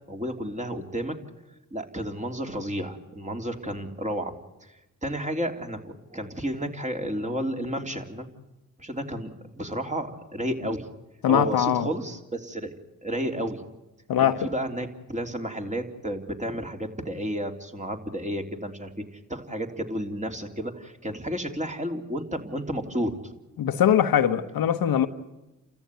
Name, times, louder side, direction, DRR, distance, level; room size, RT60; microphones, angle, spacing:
voice 1, 0.1-1.1 1.7-4.3 4.6-4.7 5.0-8.3 8.8-10.9 11.3-12.7 13.0-13.6 14.2-18.9 19.3-23.3, right 1 dB, 20° right, 3.3 m, -32 dB
voice 2, 11.2-11.9 14.1-14.5 23.6-25.1, left 9 dB, 80° left, 1.2 m, -22 dB
29.5 x 14.0 x 9.5 m
supercardioid pair, 55°, 35 cm